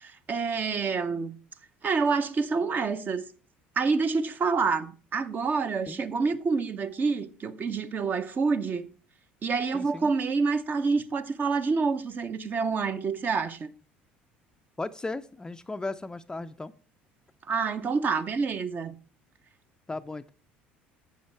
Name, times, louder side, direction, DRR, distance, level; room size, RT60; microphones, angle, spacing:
voice 1, 0.0-1.4 1.8-3.3 3.8-8.9 9.4-13.7 17.5-18.9, right 4 dB, 35° right, 0.8 m, -27 dB
voice 2, 9.7-10.1 14.8-16.7 19.9-20.3, left 3 dB, 15° left, 0.5 m, -36 dB
11.5 x 7.9 x 3.3 m
figure-of-eight pair, 60°, 5 cm